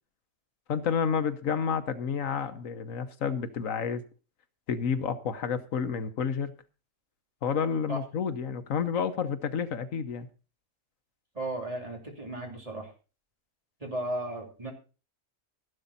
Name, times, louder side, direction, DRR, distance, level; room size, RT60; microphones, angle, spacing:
voice 1, 0.7-4.0 4.7-6.5 7.4-10.3, left 6 dB, 80° left, 1.4 m, -30 dB
voice 2, 11.3-12.9 13.8-14.7, right 1 dB, 25° right, 3.1 m, -35 dB
13.0 x 11.5 x 4.1 m
omnidirectional pair, 1.4 m